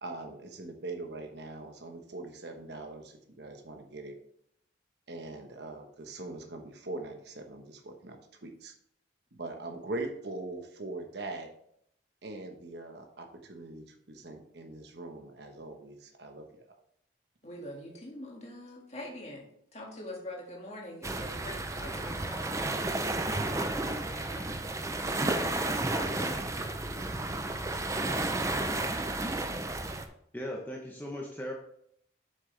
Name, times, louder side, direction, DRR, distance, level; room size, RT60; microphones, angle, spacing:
voice 1, 0.0-4.2 5.1-8.7 9.3-11.5 12.2-16.6, right 2 dB, 60° right, 4 dB, 1.1 m, -42 dB
voice 2, 17.4-24.7 25.1-28.9 29.2-29.6, left 1 dB, 35° left, -1 dB, 1.9 m, -45 dB
sound 1, 21.0-30.1, right 2 dB, 15° right, 0.5 m, -32 dB
voice 3, 30.3-31.5, equal, 10° left, -1 dB, 0.8 m, -38 dB
7.5 x 6.6 x 3.3 m, 0.70 s
head